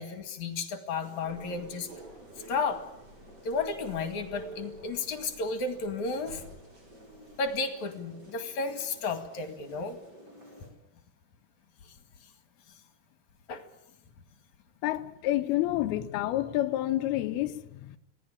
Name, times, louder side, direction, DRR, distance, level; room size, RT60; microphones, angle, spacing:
voice 1, 0.0-1.9 2.5-2.8 3.4-6.4 7.4-10.0 13.5-13.6, left 4 dB, 50° left, 3.2 m, -33 dB
sound 1, 1.0-10.7, right 1 dB, 25° right, 6.3 m, -53 dB
sound 2, 1.2-7.6, right 3 dB, 40° right, 5.3 m, -50 dB
voice 2, 14.8-18.0, left 14 dB, 75° left, 2.8 m, -29 dB
26.5 x 18.0 x 8.7 m
omnidirectional pair, 4.7 m